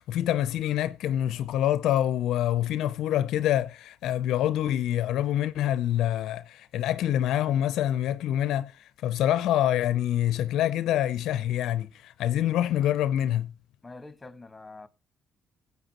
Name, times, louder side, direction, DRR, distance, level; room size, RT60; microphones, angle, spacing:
voice 1, 0.0-13.5, left 12 dB, 75° left, 0.5 m, -26 dB
voice 2, 13.8-14.9, left 3 dB, 20° left, 1.2 m, -45 dB
19.0 x 8.2 x 2.9 m
supercardioid pair, 60°, 0 cm